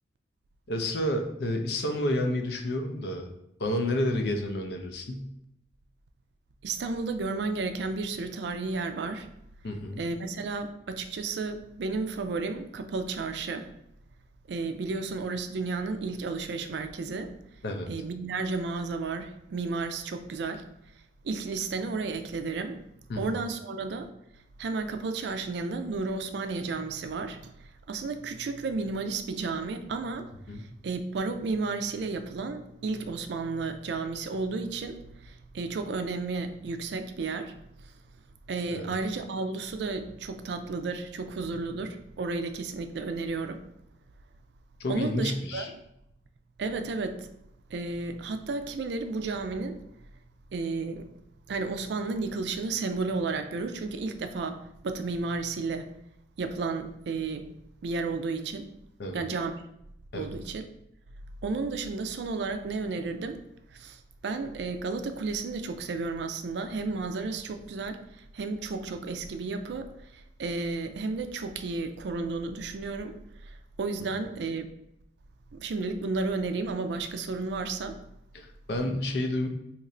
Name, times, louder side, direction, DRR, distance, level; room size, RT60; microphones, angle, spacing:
voice 1, 0.7-3.3 3.6-5.3 9.6-10.0 17.6-17.9 23.1-23.4 30.5-30.6 38.7-38.9 44.8-45.7 59.0-59.2 60.1-60.3 78.3-79.5, left 1 dB, 65° left, 4 dB, 0.5 m, -30 dB
voice 2, 6.6-9.3 10.0-13.7 14.5-17.3 17.9-20.6 21.2-22.8 23.2-24.1 24.6-37.5 37.8-37.9 38.5-43.6 44.9-45.7 46.6-47.3 47.7-49.8 50.5-51.1 51.5-55.9 56.4-57.5 57.8-58.7 59.1-59.5 60.1-60.7 61.4-63.4 63.7-73.2 73.4-74.7 75.5-78.0, right 3 dB, 70° right, 7 dB, 0.4 m, -32 dB
2.9 x 2.5 x 4.1 m, 0.81 s
head